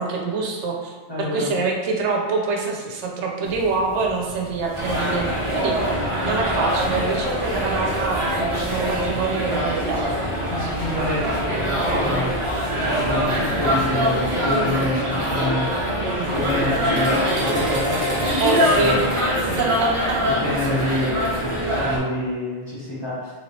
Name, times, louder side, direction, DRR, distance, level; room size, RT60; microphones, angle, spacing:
voice 1, 0.0-5.3 5.5-5.8 6.2-10.1 16.2-16.3 18.4-19.0 19.6-20.2, right 3 dB, 85° right, 0 dB, 0.9 m, -25 dB
voice 2, 1.1-1.5 10.5-16.0 16.3-19.1 19.5-19.8 20.2-23.3, left 1 dB, 25° left, -9 dB, 0.8 m, -27 dB
sound 1, 3.4-14.7, left 1 dB, 60° left, 1.1 m, -39 dB
sound 2, 4.7-22.0, equal, 35° right, 0.6 m, -23 dB
3.1 x 3.0 x 2.7 m, 1.4 s
omnidirectional pair, 1.1 m